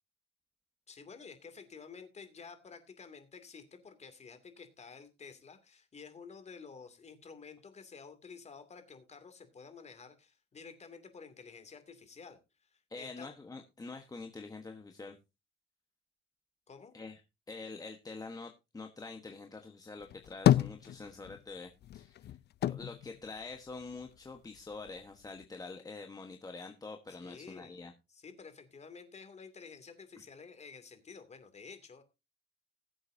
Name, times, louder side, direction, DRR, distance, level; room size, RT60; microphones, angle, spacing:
voice 1, 0.9-12.4 12.7-13.3 16.7-16.9 27.1-27.8 28.1-32.0, left 5 dB, 35° left, 8 dB, 2.6 m, -51 dB
voice 2, 12.9-15.2 16.9-17.2 17.5-22.4 22.6-27.9 30.2-30.3, left 3 dB, 20° left, 4 dB, 1.2 m, -46 dB
sound 1, 20.0-21.5 21.8-24.2 24.5-25.4, left 12 dB, 55° left, 0.5 m, -30 dB
20.0 x 7.9 x 2.7 m, 0.27 s
cardioid pair, 125°, 21 cm